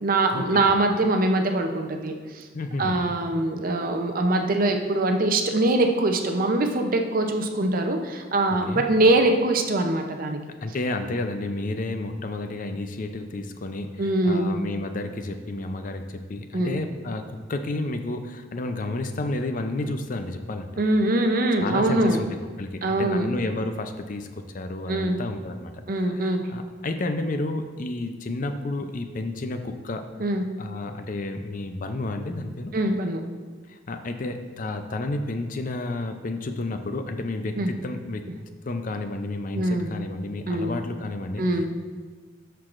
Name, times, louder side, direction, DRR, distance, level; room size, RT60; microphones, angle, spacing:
voice 1, 0.0-2.4 2.8-10.4 14.0-14.6 16.5-16.8 20.8-22.2 22.8-23.3 24.9-25.2 25.9-26.4 30.2-30.4 32.7-33.2 37.6-37.7 39.5-39.9 40.5-40.7 41.4-41.7, right 2 dB, 45° right, 4 dB, 0.6 m, -23 dB
voice 2, 2.5-3.0 8.5-8.8 10.6-20.7 21.6-22.3 22.6-30.1 30.6-32.7 33.7-38.3 38.7-41.7, left 2 dB, 45° left, 7 dB, 0.5 m, -31 dB
13.0 x 4.6 x 2.5 m, 1.5 s
head